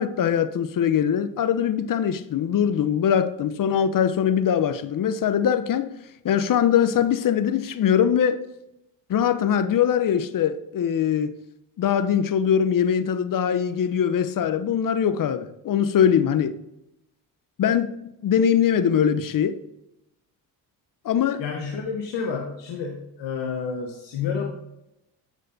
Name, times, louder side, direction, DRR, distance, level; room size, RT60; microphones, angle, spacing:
voice 1, 0.0-5.9 6.2-8.4 9.1-11.3 11.8-16.6 17.6-17.9 18.2-19.6 21.0-21.4, left 8 dB, 45° left, 0.7 m, -22 dB
voice 2, 21.4-24.5, left 6 dB, 60° left, 1.1 m, -30 dB
8.7 x 6.3 x 2.6 m
hypercardioid pair, 55°, 49 cm